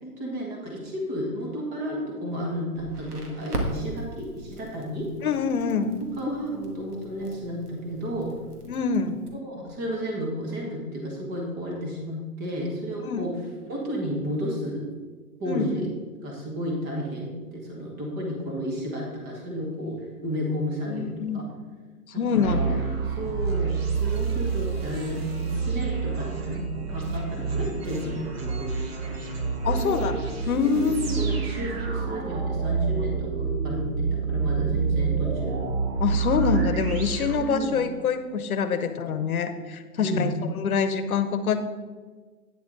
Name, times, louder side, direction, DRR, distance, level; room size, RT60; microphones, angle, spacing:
voice 1, 0.0-5.1 6.2-8.3 9.4-13.3 13.6-14.8 15.4-15.9 16.2-21.5 22.1-22.8 23.0-23.7 24.0-29.1 29.6-30.1 30.6-35.6 37.3-37.8 40.0-40.4, equal, 20° right, -1 dB, 1.6 m, -32 dB
Crackle, 2.7-9.3, right 1 dB, 85° right, 2.0 m, -38 dB
voice 2, 5.2-6.0 8.7-9.2 13.0-13.2 15.5-15.9 20.9-21.4 22.2-22.6 29.6-30.1 30.5-31.0 36.0-41.6, left 6 dB, 70° left, 10 dB, 1.0 m, -25 dB
sound 1, 22.4-38.0, right 5 dB, 40° right, 1.2 m, -28 dB
9.3 x 7.0 x 4.0 m, 1.4 s
hypercardioid pair, 160°, 45 cm